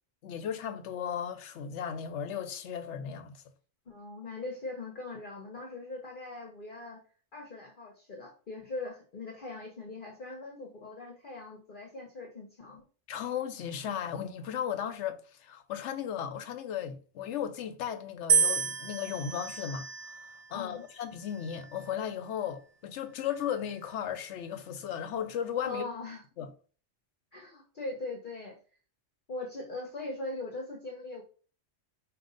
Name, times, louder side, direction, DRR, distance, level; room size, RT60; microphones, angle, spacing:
voice 1, 0.2-3.4 13.1-25.8 26.4-26.5, left 9 dB, 80° left, 0.9 m, -36 dB
voice 2, 3.9-7.0 7.3-12.8 20.5-20.8 25.6-26.2 27.3-28.6 29.3-31.2, left 2 dB, 50° left, 0.9 m, -41 dB
sound 1, 18.3-20.5 21.3-21.8, right 6 dB, 85° right, 0.3 m, -30 dB
5.1 x 2.7 x 3.8 m
omnidirectional pair, 1.2 m